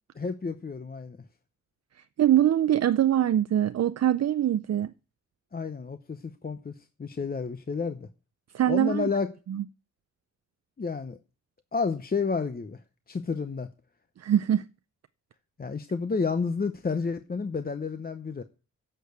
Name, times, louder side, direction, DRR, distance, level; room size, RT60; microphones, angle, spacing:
voice 1, 0.2-1.2 5.5-8.1 8.7-9.3 10.8-11.2 11.7-12.8 13.1-13.7 15.6-18.4, left 4 dB, 30° left, 0.8 m, -30 dB
voice 2, 2.2-4.9 8.5-9.1 9.5-9.6 14.2-14.6, right 11 dB, 60° right, 0.5 m, -23 dB
10.0 x 6.8 x 8.2 m
cardioid pair, 75°, 30 cm